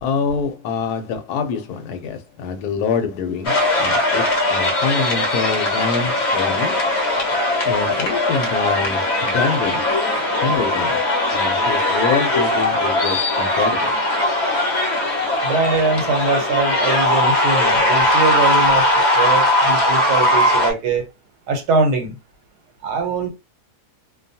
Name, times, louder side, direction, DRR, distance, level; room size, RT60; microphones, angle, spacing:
voice 1, 0.0-6.7 7.6-10.0 10.4-11.0 11.3-13.9, left 5 dB, 75° left, 1.1 m, -25 dB
sound 1, 3.4-20.7, left 1 dB, 55° left, 0.8 m, -19 dB
voice 2, 15.4-21.1 21.5-22.2 22.8-23.3, right 4 dB, 75° right, 1.3 m, -22 dB
2.6 x 2.3 x 2.7 m
omnidirectional pair, 1.7 m